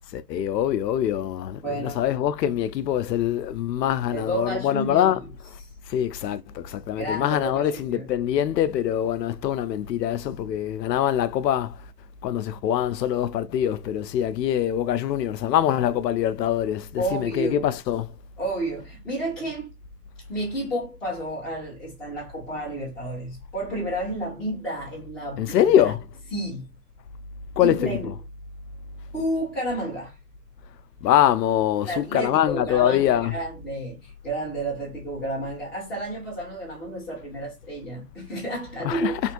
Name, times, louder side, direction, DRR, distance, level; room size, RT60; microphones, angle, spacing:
voice 1, 0.1-5.2 5.9-11.7 12.2-18.1 25.4-26.0 27.6-27.9 31.0-33.3 38.8-39.1, left 11 dB, 80° left, 0.6 m, -24 dB
voice 2, 1.6-2.0 4.1-5.3 5.6-5.7 7.0-8.1 17.0-17.7 18.4-19.7 20.3-25.9 26.3-26.6 27.6-28.1 29.1-30.2 31.8-39.3, right 1 dB, ahead, 0.5 m, -31 dB
3.5 x 2.5 x 2.7 m
hypercardioid pair, 150°, 49 cm